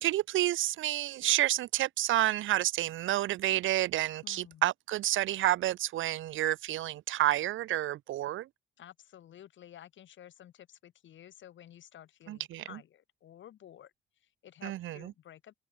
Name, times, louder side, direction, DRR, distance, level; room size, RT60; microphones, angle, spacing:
voice 1, 0.0-8.5 12.3-12.6 14.6-15.1, right 14 dB, 80° right, 1.1 m, -29 dB
voice 2, 4.2-4.7 8.8-13.9 14.2-15.5, left 11 dB, 70° left, 7.1 m, -53 dB
cardioid pair, 90°, 20 cm